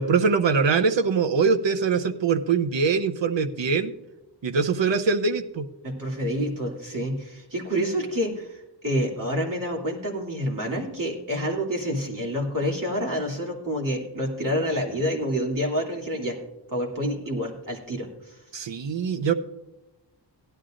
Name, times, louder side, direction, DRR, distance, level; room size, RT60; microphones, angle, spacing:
voice 1, 0.0-3.9 4.4-5.7 18.5-19.3, right 5 dB, 75° right, 10 dB, 0.8 m, -23 dB
voice 2, 5.8-16.4 16.7-18.4, equal, 45° right, -2 dB, 2.7 m, -28 dB
17.0 x 11.0 x 2.5 m, 0.93 s
wide cardioid pair, 70°, 44 cm